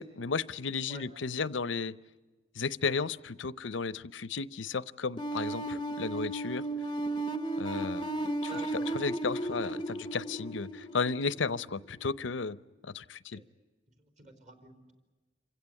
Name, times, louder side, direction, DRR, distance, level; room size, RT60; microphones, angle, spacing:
voice 1, 0.0-2.0 2.6-6.6 7.6-8.1 8.4-8.5 8.9-12.6 12.8-13.4, left 4 dB, 85° left, 18 dB, 0.7 m, -34 dB
sound 1, 5.2-12.0, right 1 dB, 25° left, 0.7 m, -35 dB
voice 2, 8.5-8.9 13.3-13.5 14.0-14.9, right 2 dB, 40° right, 6 dB, 4.4 m, -48 dB
28.0 x 16.0 x 9.7 m, 1.2 s
head